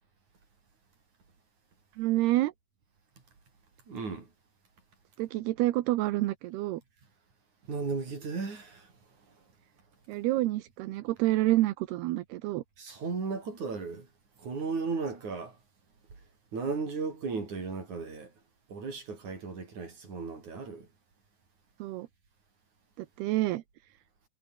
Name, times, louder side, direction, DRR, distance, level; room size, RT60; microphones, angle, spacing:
voice 1, 2.0-2.5 5.2-6.8 10.1-12.6 21.8-22.1 23.0-23.6, right 17 dB, 80° right, 3.0 m, -28 dB
voice 2, 3.9-4.3 7.7-9.4 12.8-14.1 14.4-15.6 16.5-18.3 18.7-20.9, right 4 dB, 45° right, 7.1 m, -35 dB
omnidirectional pair, 4.7 m